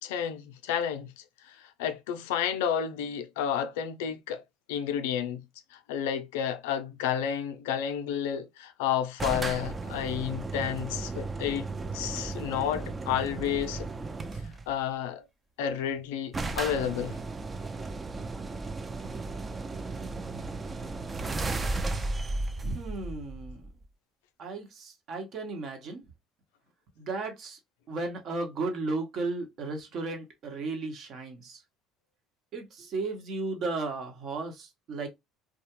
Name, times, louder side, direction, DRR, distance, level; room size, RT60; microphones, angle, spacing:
voice 1, 0.0-4.4 4.7-5.4 5.7-11.7 11.9-13.9 14.7-15.2 15.6-17.2, left 9 dB, 90° left, 0.4 m, -31 dB
sound 1, 9.2-14.7 15.7-15.8 16.0-16.1 16.3-23.8, right 3 dB, 25° right, 0.4 m, -35 dB
voice 2, 22.6-23.7 24.4-26.0 27.0-27.6 27.9-31.6 32.5-35.1, right 3 dB, 55° right, 1.0 m, -35 dB
2.4 x 2.1 x 2.8 m
supercardioid pair, 90°, 0 cm